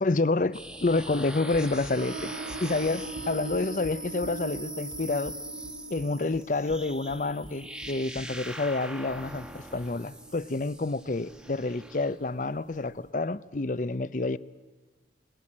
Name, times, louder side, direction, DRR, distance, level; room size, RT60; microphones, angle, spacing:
voice 1, 0.0-2.3 2.6-5.3 5.9-14.4, left 3 dB, 45° left, 0.6 m, -28 dB
sound 1, 0.5-12.2, right 1 dB, 5° right, 1.3 m, -42 dB
Run, 1.5-8.6, equal, 20° left, 1.1 m, -49 dB
sound 2, 2.0-13.1, right 3 dB, 45° right, 1.2 m, -44 dB
22.0 x 21.5 x 8.7 m
head